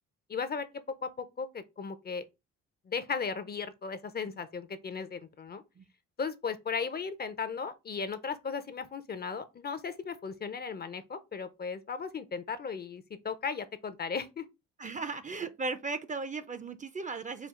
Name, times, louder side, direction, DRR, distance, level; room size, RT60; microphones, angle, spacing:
voice 1, 0.3-2.3 2.9-5.6 6.2-14.4, left 5 dB, 35° left, 0.5 m, -36 dB
voice 2, 14.8-17.5, right 3 dB, 25° right, 0.5 m, -36 dB
4.4 x 2.3 x 3.6 m
cardioid pair, 90°, 30 cm